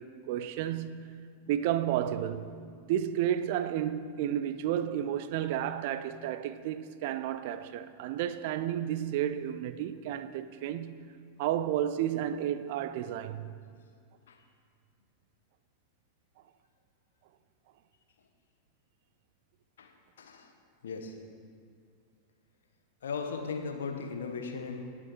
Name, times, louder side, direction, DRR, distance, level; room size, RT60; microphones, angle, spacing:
voice 1, 0.0-2.5 2.9-11.1 11.4-13.5, right 10 dB, 50° right, 0.5 m, -32 dB
voice 2, 20.2-20.5 20.8-21.1 23.0-24.8, left 5 dB, 65° left, 1.2 m, -37 dB
18.5 x 8.2 x 3.2 m
figure-of-eight pair, 90°, 0 cm